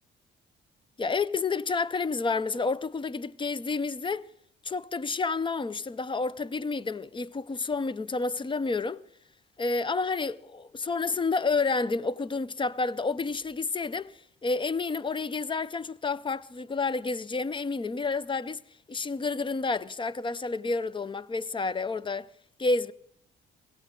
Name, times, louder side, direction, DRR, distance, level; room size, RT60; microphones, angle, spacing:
voice 1, 1.0-4.3 4.6-9.0 9.6-18.6 18.9-22.3 22.6-22.9, left 4 dB, 25° left, 0.5 m, -30 dB
18.0 x 17.0 x 3.7 m
cardioid pair, 90°, 20 cm